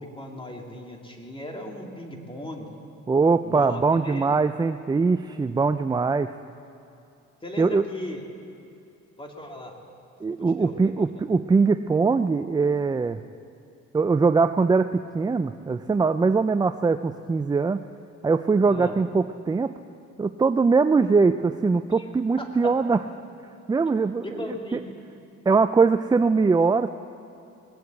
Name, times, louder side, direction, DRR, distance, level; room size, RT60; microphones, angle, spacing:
voice 1, 0.0-2.7 3.4-4.3 7.4-8.2 9.2-9.8 10.6-10.9 18.7-19.0 22.0-22.1 22.4-22.5 24.2-24.8, left 1 dB, 15° left, 1 dB, 2.3 m, -37 dB
voice 2, 3.1-6.3 7.6-7.8 10.2-13.2 13.9-17.8 18.2-19.7 20.2-23.0 23.7-24.8 25.5-26.9, right 4 dB, 15° right, 11 dB, 0.3 m, -22 dB
20.0 x 7.9 x 8.2 m, 2.7 s
cardioid pair, 90°, 30 cm